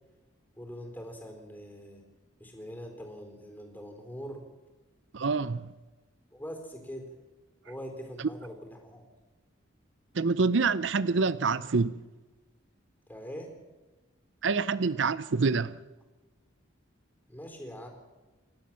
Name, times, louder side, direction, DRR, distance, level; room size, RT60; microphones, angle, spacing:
voice 1, 0.6-2.0 2.4-4.4 6.3-7.1 7.6-9.1 13.1-13.5 17.3-17.9, equal, 10° left, 4.1 m, -42 dB
voice 2, 5.1-5.7 10.1-11.9 14.4-15.8, right 4 dB, 70° right, 0.6 m, -26 dB
29.0 x 13.0 x 7.5 m
head